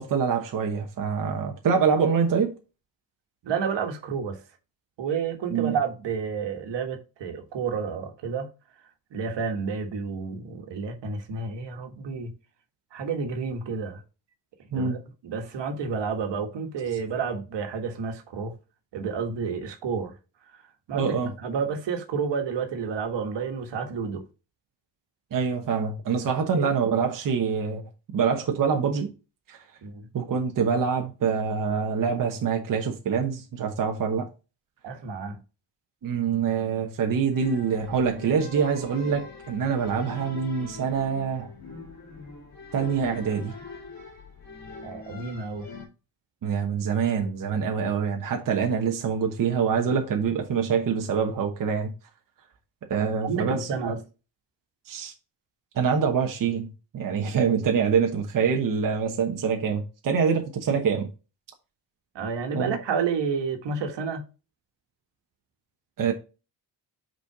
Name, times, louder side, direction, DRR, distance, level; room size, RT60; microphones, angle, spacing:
voice 1, 0.0-2.6 5.5-5.8 14.7-15.0 20.9-21.3 25.3-27.8 28.1-29.1 29.5-29.6 30.1-34.3 36.0-41.5 42.7-43.5 46.4-51.9 52.9-53.7 54.9-55.1 55.7-61.1 62.5-62.8 66.0-66.1, right 6 dB, 50° right, 1.1 m, -25 dB
voice 2, 3.4-4.4 5.0-8.5 9.1-12.3 12.9-14.0 14.7-18.5 18.9-20.1 20.5-20.6 20.9-24.2 26.5-26.7 29.8-30.1 34.8-35.4 44.8-45.7 53.0-54.0 62.2-64.3, right 5 dB, 80° right, 1.6 m, -30 dB
sound 1, 37.3-45.9, left 4 dB, 40° left, 2.7 m, -43 dB
5.7 x 4.3 x 4.7 m
wide cardioid pair, 160°, 42 cm